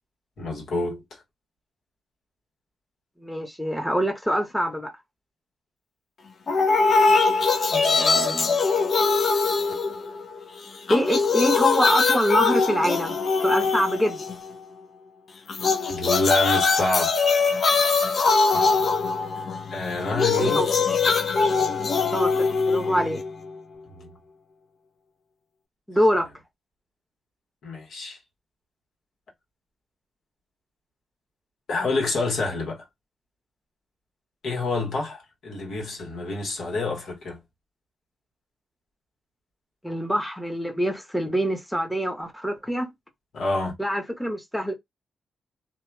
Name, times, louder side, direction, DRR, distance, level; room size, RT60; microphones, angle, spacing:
voice 1, 0.4-1.0 7.7-8.2 15.9-17.2 19.7-20.6 23.9-24.1 27.6-28.2 31.7-32.8 34.4-37.4 43.3-43.7, left 2 dB, 75° left, 1.3 m, -27 dB
voice 2, 3.2-4.9 7.8-8.6 10.9-13.1 13.4-14.3 20.4-20.7 22.1-23.2 25.9-26.3 39.8-42.9 43.8-44.7, equal, 5° left, 0.9 m, -25 dB
sound 1, 6.5-10.4 10.7-14.5 15.5-23.5, left 4 dB, 55° left, 0.6 m, -22 dB
2.7 x 2.3 x 2.3 m
cardioid pair, 60°, 0 cm